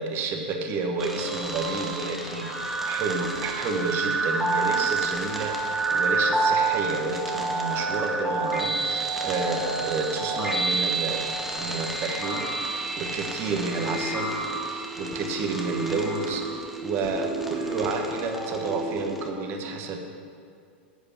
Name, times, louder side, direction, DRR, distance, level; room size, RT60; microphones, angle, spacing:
voice 1, 0.0-11.3 11.5-14.4 14.6-20.0, right 4 dB, 40° right, 4 dB, 1.4 m, -30 dB
sound 1, 1.0-19.3, right 3 dB, ahead, 1.2 m, -29 dB
10.5 x 5.1 x 7.2 m, 2.3 s
hypercardioid pair, 110°, 6 cm